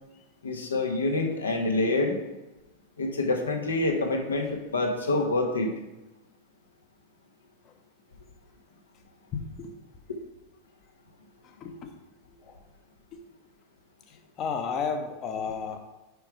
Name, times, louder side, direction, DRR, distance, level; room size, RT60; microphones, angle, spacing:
voice 1, 0.4-2.2 3.0-5.7, left 2 dB, 75° left, 2 dB, 1.3 m, -26 dB
voice 2, 9.3-9.7 11.4-11.9 12.3-12.6 13.1-13.2 14.1-15.8, left 5 dB, 35° left, 6 dB, 1.0 m, -34 dB
6.9 x 5.8 x 4.8 m, 1.0 s
figure-of-eight pair, 90°, 0 cm